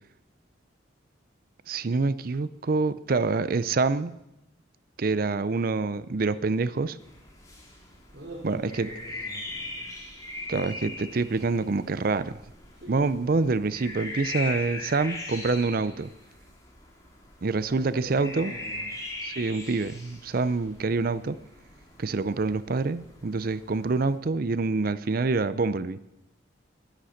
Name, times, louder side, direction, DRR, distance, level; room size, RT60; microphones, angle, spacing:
voice 1, 1.7-4.1 5.0-7.0 8.4-8.9 10.5-12.4 12.9-16.1 17.4-18.5 19.2-21.4 22.0-26.0, right 3 dB, 50° right, 15 dB, 0.5 m, -26 dB
sound 1, 7.0-24.2, left 2 dB, 20° left, 2.5 m, -40 dB
voice 2, 8.1-9.9 12.8-13.5 17.7-18.9, right 1 dB, 65° right, -2 dB, 3.0 m, -44 dB
11.5 x 10.0 x 6.4 m, 0.90 s
head